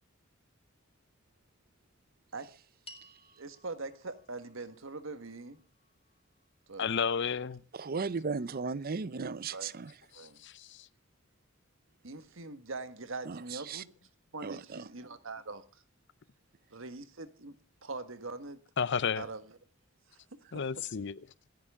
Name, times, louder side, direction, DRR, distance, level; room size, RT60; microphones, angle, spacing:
sound 1, 2.9-7.3, left 2 dB, 30° left, 2.1 m, -59 dB
voice 1, 3.4-5.6 6.7-6.9 9.5-9.7 10.1-10.4 12.0-13.9 14.3-15.6 16.7-17.6 17.8-18.6 19.2-19.6 20.1-20.2 20.5-20.9, right 3 dB, 70° right, 1.6 m, -42 dB
voice 2, 6.8-7.6 10.4-10.7 18.8-19.3 20.5-21.1, left 6 dB, 60° left, 0.6 m, -31 dB
voice 3, 7.7-9.9 13.3-13.4 13.7-13.8 14.4-14.8, right 4 dB, 45° right, 0.6 m, -35 dB
26.5 x 10.5 x 3.6 m
head